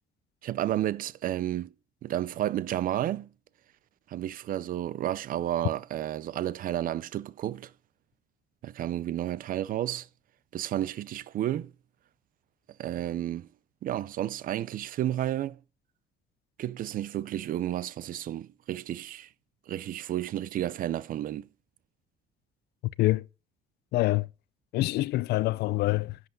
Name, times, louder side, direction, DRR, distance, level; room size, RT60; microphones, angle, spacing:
voice 1, 0.4-1.7 2.0-3.3 4.1-7.7 8.6-10.1 10.5-11.7 12.8-13.5 13.8-15.6 16.6-19.3 19.7-21.5, right 12 dB, 55° right, 0.5 m, -31 dB
voice 2, 23.9-24.3 24.7-26.2, left 18 dB, 75° left, 0.5 m, -25 dB
10.5 x 8.0 x 3.9 m
cardioid pair, 110°, 17 cm